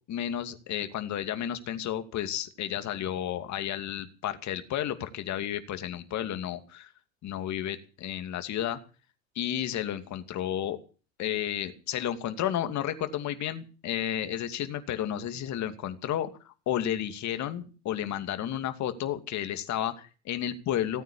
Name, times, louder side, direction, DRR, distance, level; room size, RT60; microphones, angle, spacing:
voice 1, 0.1-6.9 7.2-8.8 9.3-10.8 11.2-21.0, left 11 dB, 50° left, 9 dB, 2.5 m, -32 dB
17.5 x 9.3 x 8.6 m, 0.37 s
hypercardioid pair, 80°, 37 cm